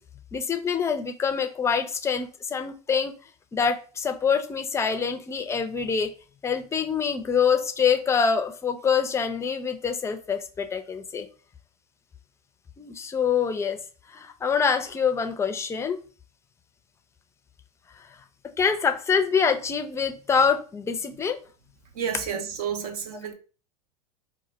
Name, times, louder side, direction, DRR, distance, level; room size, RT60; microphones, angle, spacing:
voice 1, 0.3-3.1 3.5-6.1 6.4-11.3 12.8-13.8 14.1-16.0 18.6-21.4, left 6 dB, 15° left, 0.4 m, -25 dB
voice 2, 21.9-23.3, right 7 dB, 75° right, 0.6 m, -30 dB
2.3 x 2.1 x 3.8 m
hypercardioid pair, 100°, 19 cm